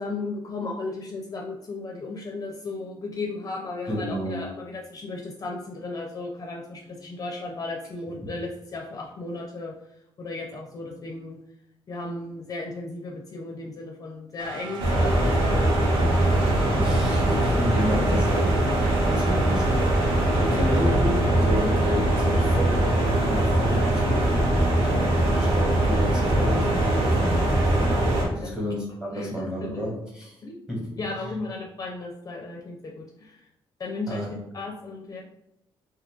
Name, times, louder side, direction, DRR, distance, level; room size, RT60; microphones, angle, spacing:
voice 1, 0.0-9.7 10.2-11.4 11.9-16.1 20.5-20.7 28.2-28.5 29.1-29.3 29.6-29.8 30.4-30.6 31.0-33.4 33.8-34.3 34.5-35.2, left 3 dB, 40° left, 0 dB, 0.5 m, -35 dB
voice 2, 3.9-4.5 8.2-8.4 16.8-28.0 28.3-30.3 30.7-31.3 34.1-34.4, equal, 10° right, -3 dB, 1.2 m, -31 dB
sound 1, 14.4-21.4, right 3 dB, 55° right, 1.0 m, -38 dB
sound 2, 14.8-28.2, right 1 dB, 80° right, 1.0 m, -22 dB
2.6 x 2.5 x 3.6 m, 0.80 s
cardioid pair, 110°, 10 cm